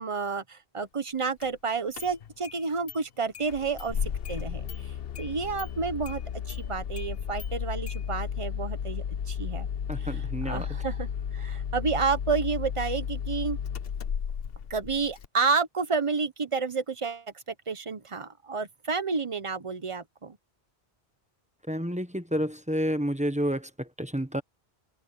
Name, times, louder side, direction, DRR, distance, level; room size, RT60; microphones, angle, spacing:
voice 1, 0.0-4.0 4.3-4.7 5.2-6.2 6.5-9.7 10.0-13.6 14.7-17.2 17.7-20.4, right 4 dB, 30° right, 1.0 m, -30 dB
Engine starting, 1.4-1.5 1.9-2.6 2.9-3.0 3.3-15.3, left 8 dB, 70° left, 1.0 m, -34 dB
voice 2, 9.9-10.7 21.7-24.4, equal, 5° right, 1.1 m, -30 dB
open air
omnidirectional pair, 1.0 m